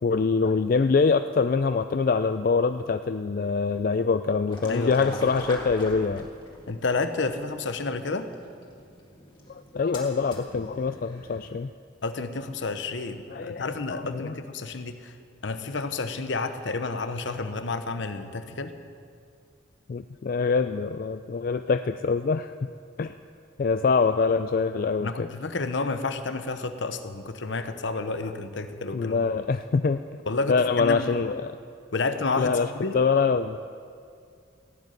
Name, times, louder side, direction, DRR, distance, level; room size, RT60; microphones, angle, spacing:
voice 1, 0.0-6.3 9.5-11.7 13.3-14.4 19.9-22.5 23.0-23.1 23.6-25.3 28.9-30.0 30.5-31.5 32.4-32.7 32.9-33.6, left 4 dB, 45° left, 9 dB, 0.3 m, -24 dB
sound 1, 4.5-11.5, left 1 dB, 25° left, 1.9 m, -43 dB
voice 2, 4.7-5.2 6.7-8.3 12.0-15.1 15.4-18.7 25.0-29.3 30.3-31.2 31.9-33.0, left 3 dB, 70° left, 9 dB, 0.9 m, -30 dB
15.5 x 7.6 x 9.5 m, 2.3 s
head